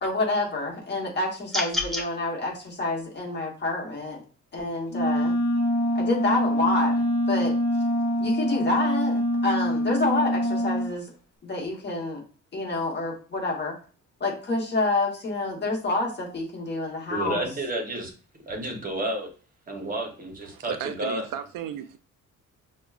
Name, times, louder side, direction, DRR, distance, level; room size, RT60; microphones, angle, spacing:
voice 1, 0.0-4.2 4.5-5.4 5.9-7.0 7.3-7.5 8.2-11.1 11.4-12.2 12.5-13.7 14.2-17.4, left 2 dB, 35° left, 1.1 m, -28 dB
sound 1, 1.5-2.1, left 2 dB, ahead, 0.5 m, -27 dB
Wind instrument woodwind instrument, 4.9-10.9, equal, 55° left, 0.8 m, -25 dB
voice 2, 17.1-18.1 18.5-19.3 19.7-21.2, right 1 dB, 25° right, 0.8 m, -31 dB
voice 3, 20.4-22.0, right 10 dB, 80° right, 0.5 m, -35 dB
5.8 x 2.2 x 2.4 m
wide cardioid pair, 175°, 32 cm